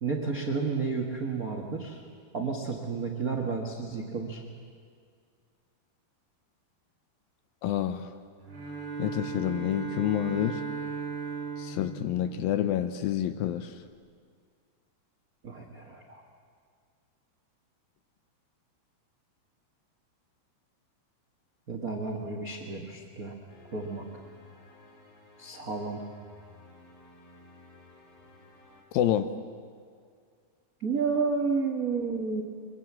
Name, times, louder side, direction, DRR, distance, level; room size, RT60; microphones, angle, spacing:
voice 1, 0.0-2.0 2.3-4.4 15.4-16.2 21.7-23.4 23.7-24.0 25.4-26.0 30.8-32.4, right 4 dB, 75° right, 2 dB, 0.8 m, -31 dB
voice 2, 7.6-8.1 9.0-10.6 11.6-13.7 28.9-29.3, left 11 dB, 75° left, 10 dB, 2.2 m, -28 dB
Bowed string instrument, 8.4-13.0, right 5 dB, 50° right, 6.7 m, -37 dB
sound 1, 23.5-28.8, left 2 dB, 45° left, 3.8 m, -55 dB
23.0 x 22.5 x 7.4 m, 2.1 s
omnidirectional pair, 4.7 m